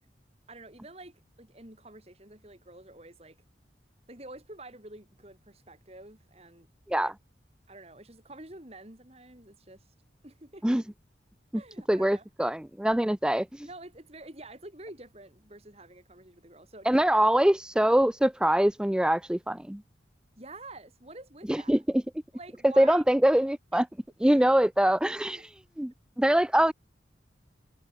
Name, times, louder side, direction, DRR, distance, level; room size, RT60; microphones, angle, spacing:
voice 1, 0.5-3.4 4.1-6.7 7.0-7.1 7.7-9.8 10.2-10.8 11.5-12.3 13.6-17.4 20.4-21.8 22.3-23.1 23.7-23.8 24.2-24.5, right 2 dB, 35° right, 3.4 m, -48 dB
voice 2, 11.9-13.7 16.9-19.8 21.5-21.8 22.6-23.9 24.2-25.9 26.2-26.7, right 1 dB, 5° right, 0.3 m, -24 dB
head